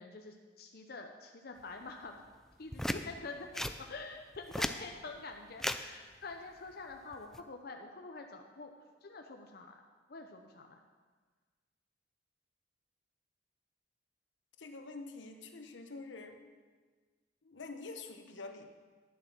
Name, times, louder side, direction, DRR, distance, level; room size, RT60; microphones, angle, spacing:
voice 1, 0.0-2.2 2.6-8.7 9.0-9.8 10.1-10.8, left 3 dB, 55° left, 3 dB, 0.7 m, -47 dB
sound 1, 2.7-3.0 3.5-3.8 4.3-4.8 5.6-5.8 7.1-7.4, left 1 dB, ahead, 0.3 m, -34 dB
voice 2, 14.6-16.5 17.4-18.7, left 3 dB, 80° left, 6 dB, 0.9 m, -46 dB
10.5 x 7.3 x 6.1 m, 1.4 s
head